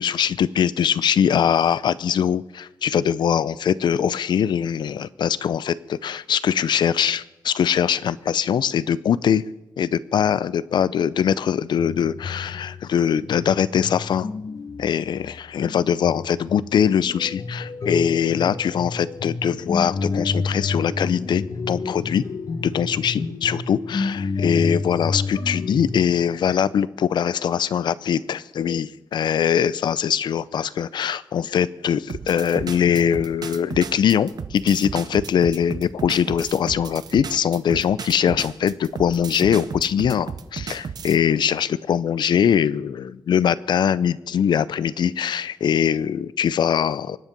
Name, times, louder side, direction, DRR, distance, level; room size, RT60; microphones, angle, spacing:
voice 1, 0.0-9.4 9.8-14.3 14.8-22.2 22.6-47.2, left 8 dB, 85° left, 18 dB, 0.6 m, -22 dB
sound 1, 11.8-26.0, left 3 dB, 55° left, 1.2 m, -30 dB
sound 2, 32.1-41.2, right 6 dB, 65° right, 0.9 m, -34 dB
24.5 x 10.0 x 5.3 m, 0.98 s
wide cardioid pair, 135°, 7 cm